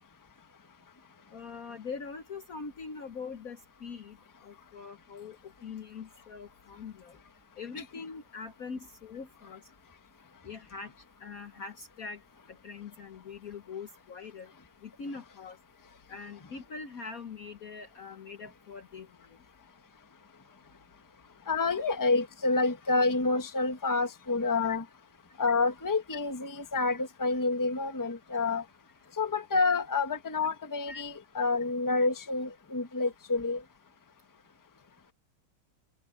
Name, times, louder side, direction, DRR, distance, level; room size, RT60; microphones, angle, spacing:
voice 1, 1.3-4.2 4.4-7.2 7.6-9.6 10.4-10.9 11.2-12.2 12.5-14.5 14.8-15.6 16.1-19.3 28.3-28.4 30.9-31.0 32.0-32.1, left 5 dB, 50° left, 1.3 m, -43 dB
voice 2, 21.5-24.8 25.4-28.6 29.2-33.6, left 3 dB, 10° left, 1.1 m, -28 dB
omnidirectional pair, 2.3 m